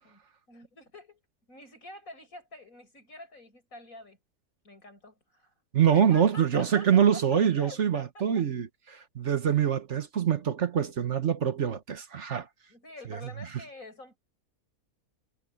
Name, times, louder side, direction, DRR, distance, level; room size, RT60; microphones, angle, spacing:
voice 1, 0.5-1.2 1.5-4.2 4.6-5.5 5.8-8.5 12.7-14.2, left 1 dB, 60° left, 8.0 m, -47 dB
voice 2, 5.7-12.5 13.1-13.2, right 8 dB, 50° right, 1.4 m, -25 dB
omnidirectional pair, 1.6 m